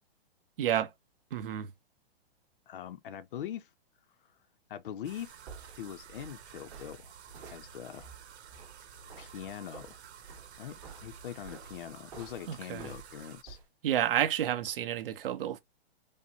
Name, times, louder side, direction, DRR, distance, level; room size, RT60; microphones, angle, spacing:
voice 1, 0.6-0.9 1.3-1.7 12.5-12.9 13.8-15.6, right 10 dB, 55° right, 0.7 m, -30 dB
voice 2, 2.7-3.7 4.7-5.4 5.8-7.1 7.5-8.1 9.2-10.0 10.6-13.6, left 10 dB, 55° left, 0.5 m, -42 dB
sound 1, 5.0-13.4, right 8 dB, 80° right, 0.9 m, -52 dB
sound 2, 5.2-13.6, right 5 dB, 40° right, 1.9 m, -51 dB
5.2 x 2.1 x 2.8 m
hypercardioid pair, 175°, 32 cm